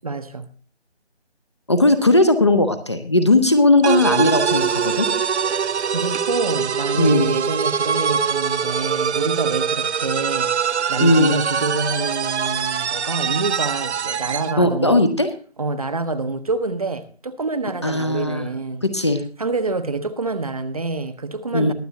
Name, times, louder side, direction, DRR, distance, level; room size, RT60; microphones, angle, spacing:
voice 1, 0.0-0.5 5.5-15.0 15.6-18.8 19.4-21.7, right 3 dB, 35° right, 0.7 m, -27 dB
voice 2, 1.7-5.1 7.0-7.3 11.0-11.3 14.6-15.3 17.8-18.5 18.8-19.2 21.5-21.7, left 2 dB, 25° left, 0.6 m, -17 dB
sound 1, 3.8-14.6, right 7 dB, 75° right, 0.5 m, -23 dB
22.0 x 7.6 x 2.7 m
figure-of-eight pair, 160°, 34 cm